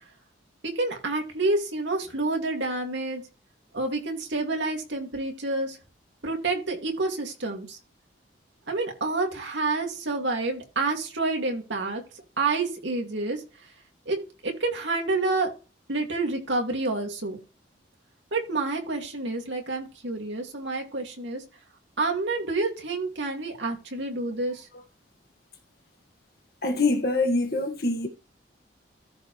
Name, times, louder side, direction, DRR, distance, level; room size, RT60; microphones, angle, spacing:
voice 1, 0.6-3.2 3.7-5.8 6.2-7.8 8.7-12.0 12.4-13.4 14.1-14.2 14.4-15.5 15.9-17.4 18.3-21.4 22.0-24.7, right 3 dB, 70° right, 2.4 m, -28 dB
voice 2, 26.6-28.1, left 2 dB, 50° left, 1.8 m, -24 dB
14.0 x 4.8 x 3.2 m
head